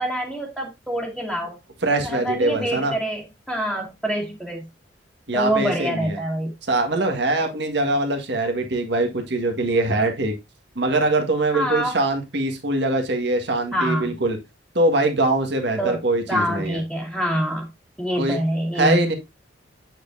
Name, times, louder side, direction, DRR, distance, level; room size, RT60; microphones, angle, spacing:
voice 1, 0.0-1.6 2.0-4.7 5.3-6.5 11.5-11.9 13.7-14.1 15.8-16.0 16.3-17.7 18.0-19.0, equal, 5° right, 1.7 m, -25 dB
voice 2, 1.8-2.9 5.3-6.2 6.7-10.3 10.7-14.4 14.7-16.8 18.1-18.4 18.7-19.1, right 2 dB, 65° right, 1.7 m, -22 dB
8.4 x 6.4 x 2.6 m
head